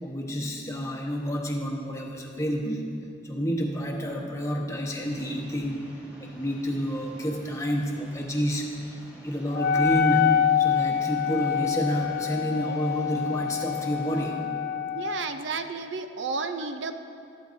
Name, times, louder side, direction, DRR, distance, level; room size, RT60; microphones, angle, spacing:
voice 1, 0.0-2.8 3.2-5.9 6.2-14.4, equal, 15° left, 0 dB, 1.1 m, -29 dB
sound 1, 5.0-14.3, equal, 10° right, 2.5 m, -49 dB
Wind instrument woodwind instrument, 9.5-15.3, left 8 dB, 50° left, 0.3 m, -26 dB
voice 2, 14.9-16.9, right 4 dB, 65° right, 8 dB, 0.5 m, -32 dB
13.5 x 12.5 x 2.7 m, 2.4 s
head